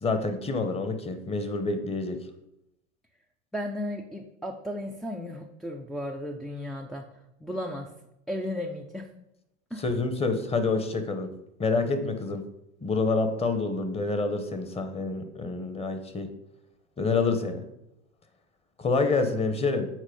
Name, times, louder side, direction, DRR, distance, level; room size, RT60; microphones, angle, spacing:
voice 1, 0.0-2.2 9.8-11.3 11.6-12.5 12.8-16.3 17.0-17.6 18.8-19.9, left 3 dB, 15° left, 9 dB, 0.9 m, -27 dB
voice 2, 3.5-7.0 7.4-7.9 8.3-9.1 9.7-9.8, left 1 dB, ahead, 0 dB, 0.4 m, -34 dB
7.4 x 4.3 x 5.2 m, 0.85 s
supercardioid pair, 110°, 35 cm